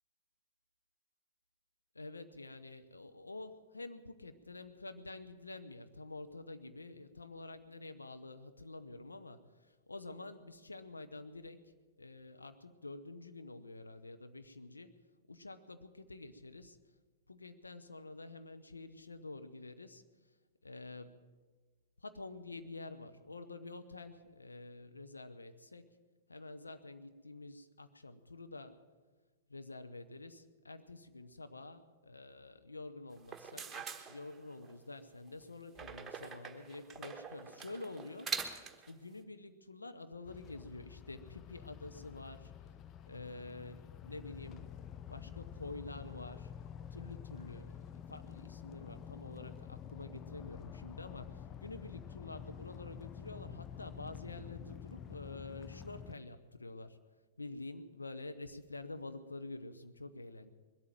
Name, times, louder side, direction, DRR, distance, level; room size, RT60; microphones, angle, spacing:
voice 1, 1.9-9.4 9.9-11.7 12.0-15.0 15.3-16.8 17.3-20.0 20.6-21.2 22.0-26.0 26.3-28.8 29.5-42.5 43.1-44.8 45.1-46.5 46.9-47.8 48.1-57.0 57.4-60.5, left 2 dB, 80° left, 9 dB, 1.0 m, -48 dB
sound 1, 33.2-34.7 35.7-38.9, right 5 dB, 15° right, 1.3 m, -44 dB
sound 2, 40.2-56.1, left 8 dB, 25° left, 0.5 m, -49 dB
21.5 x 8.6 x 7.7 m, 1.4 s
figure-of-eight pair, 105°, 0 cm